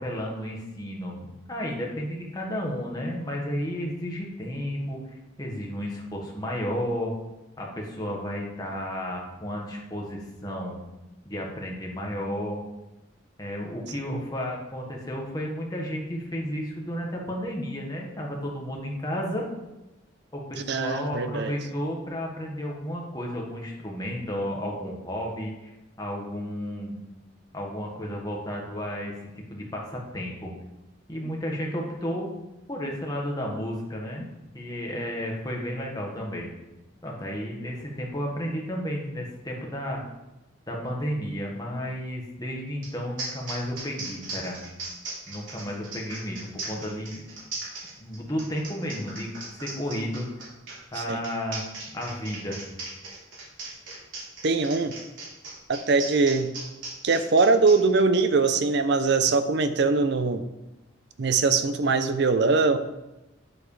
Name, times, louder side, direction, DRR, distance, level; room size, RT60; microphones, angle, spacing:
voice 1, 0.0-7.1 7.6-10.8 11.2-12.6 13.4-19.5 20.3-25.5 26.0-26.9 27.5-29.2 29.5-30.5 31.1-32.3 32.7-34.3 34.5-36.5 37.0-40.0 40.7-44.6 45.3-47.2 48.0-50.5 50.9-51.6 51.9-52.6, equal, 20° left, -1 dB, 1.5 m, -32 dB
voice 2, 20.7-21.5 51.0-51.2 54.4-54.9 55.7-56.5 57.0-60.4 61.2-62.8, right 4 dB, 60° right, 10 dB, 0.6 m, -22 dB
sound 1, 42.8-42.9 43.2-57.8, right 3 dB, 80° right, 2.9 m, -38 dB
9.4 x 7.9 x 3.3 m, 0.97 s
head